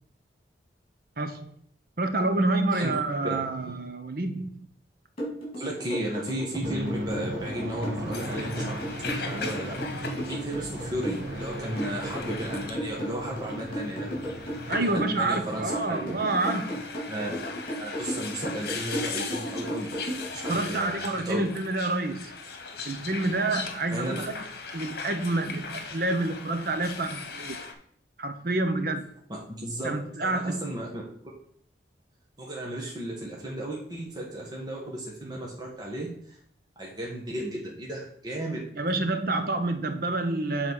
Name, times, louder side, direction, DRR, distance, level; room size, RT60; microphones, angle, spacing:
voice 1, 1.2-1.5 2.0-4.7 14.7-16.8 20.5-22.3 22.8-24.5 24.7-27.6 28.2-29.1 29.8-30.7 38.8-40.7, right 2 dB, 55° right, 8 dB, 0.8 m, -28 dB
sound 1, 5.2-20.6, equal, 30° left, 3.5 m, -34 dB
voice 2, 5.6-14.2 14.7-16.0 17.1-17.4 17.8-21.4 23.9-24.1 29.3-29.9 30.2-31.0 32.4-36.4 36.8-38.6, right 1 dB, 25° right, -3 dB, 1.4 m, -35 dB
Aircraft, 6.6-15.6, right 1 dB, 75° right, 1.5 m, -36 dB
sound 2, 8.1-27.7, left 4 dB, 60° left, 1.3 m, -39 dB
7.5 x 4.0 x 6.2 m, 0.63 s
head